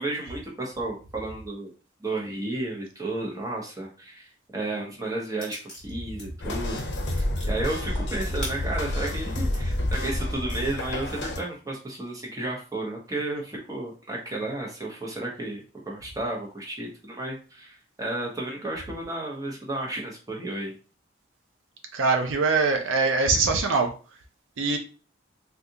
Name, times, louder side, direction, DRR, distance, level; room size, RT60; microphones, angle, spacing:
voice 1, 0.0-1.7 2.0-6.8 7.1-20.7, right 2 dB, 20° right, -2 dB, 0.8 m, -33 dB
sound 1, 5.4-6.3 6.6-9.6 10.1-10.2 10.7-11.6, left 1 dB, 5° left, 1.2 m, -42 dB
sound 2, 6.4-11.4, left 1 dB, 70° left, 0.8 m, -29 dB
voice 2, 21.9-23.9 24.6-24.8, right 4 dB, 85° right, 4 dB, 0.6 m, -22 dB
3.6 x 2.4 x 2.8 m, 0.37 s
head